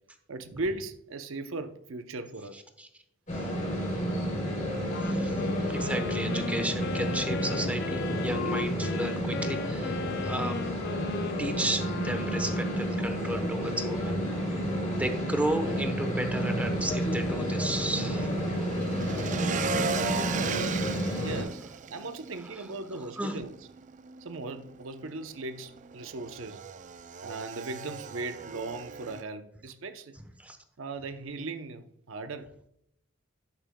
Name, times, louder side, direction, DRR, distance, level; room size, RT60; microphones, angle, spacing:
voice 1, 0.3-2.6 20.3-20.8 21.2-21.6 21.9-23.5 24.2-26.6 27.2-30.1 30.8-32.5, right 3 dB, 75° right, 0.7 m, -38 dB
sound 1, 3.3-21.4, equal, 40° left, 3.1 m, -30 dB
Wind instrument woodwind instrument, 4.9-13.2, left 5 dB, 55° left, 0.4 m, -38 dB
voice 2, 5.0-5.4 5.7-10.6 11.4-14.2 15.0-18.3 23.2-23.4 30.4-30.6, right 1 dB, 5° right, 0.9 m, -33 dB
Motorcycle / Engine, 11.8-29.2, right 5 dB, 40° right, 0.4 m, -39 dB
12.0 x 8.9 x 2.2 m
head